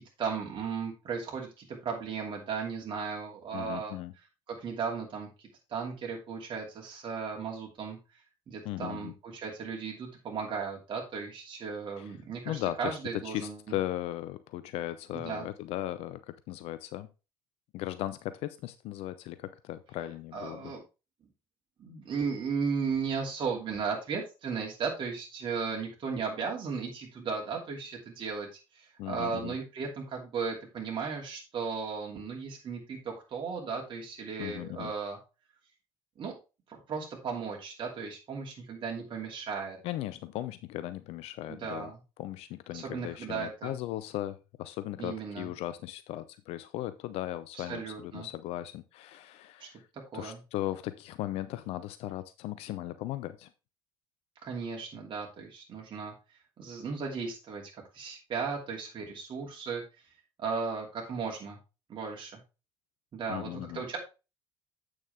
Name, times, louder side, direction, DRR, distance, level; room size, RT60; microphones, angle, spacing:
voice 1, 0.0-3.9 4.5-5.3 5.7-8.0 8.5-13.8 15.2-15.5 20.3-20.8 21.8-28.5 29.1-35.2 36.2-36.3 36.7-39.8 41.5-42.0 42.7-43.7 45.0-45.5 47.6-48.3 49.6-49.7 50.1-50.4 54.4-56.1 56.6-59.8 60.4-61.6 61.9-62.4 63.1-64.0, right 5 dB, 45° right, -1 dB, 2.8 m, -36 dB
voice 2, 3.5-4.1 8.6-9.1 12.0-12.2 12.4-17.1 17.7-20.7 29.0-29.6 34.4-34.9 39.8-41.9 42.2-49.9 50.1-53.5 63.3-63.8, left 14 dB, 65° left, 14 dB, 0.6 m, -37 dB
8.5 x 6.4 x 3.6 m, 0.29 s
hypercardioid pair, 60°, 11 cm